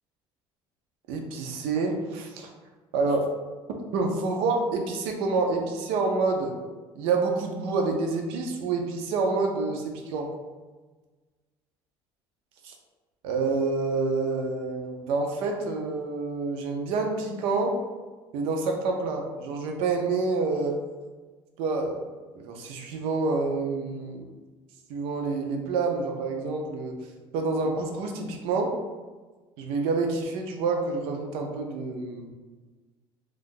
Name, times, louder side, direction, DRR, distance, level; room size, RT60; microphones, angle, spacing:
voice 1, 1.1-2.5 2.9-3.3 3.9-6.5 6.9-10.3 12.6-12.7 13.2-17.8 18.3-20.8 21.6-24.2 24.9-27.0 27.3-28.7 29.6-32.3, right 3 dB, 80° right, 3 dB, 0.5 m, -28 dB
2.6 x 2.4 x 3.6 m, 1.3 s
cardioid pair, 170°, 10 cm